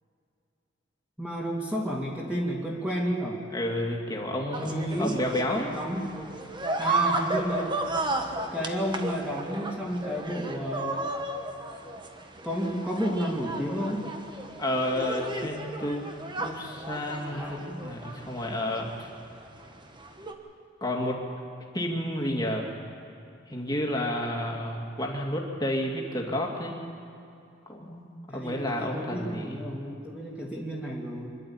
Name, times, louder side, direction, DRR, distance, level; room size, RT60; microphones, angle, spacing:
voice 1, 1.2-3.4 4.6-5.2 5.7-6.1 6.8-7.8 8.5-11.0 12.4-14.1 17.3-17.9 28.3-31.3, equal, 5° right, -4 dB, 2.8 m, -31 dB
voice 2, 3.5-5.7 14.6-16.1 16.4-19.1 20.8-21.2 21.7-22.8 23.5-26.8 27.7-29.7, left 1 dB, 20° left, 0 dB, 2.5 m, -31 dB
sound 1, 4.5-20.3, right 2 dB, 25° right, 1.3 m, -34 dB
26.5 x 12.0 x 8.7 m, 2.6 s
head